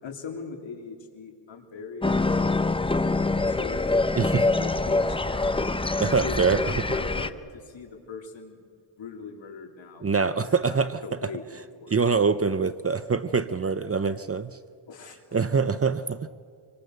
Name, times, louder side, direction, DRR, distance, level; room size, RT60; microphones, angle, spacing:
voice 1, 0.0-2.5 3.0-5.7 6.2-8.6 9.0-11.4 11.8-12.1 14.9-15.2, left 5 dB, 65° left, 2 dB, 3.6 m, -41 dB
sound 1, 2.0-7.3, left 3 dB, 10° left, 0.7 m, -25 dB
voice 2, 6.0-6.6 10.0-11.0 11.9-14.6 15.3-16.3, right 5 dB, 30° right, 13 dB, 0.7 m, -24 dB
26.5 x 23.0 x 6.7 m, 2.2 s
cardioid pair, 95°, 50 cm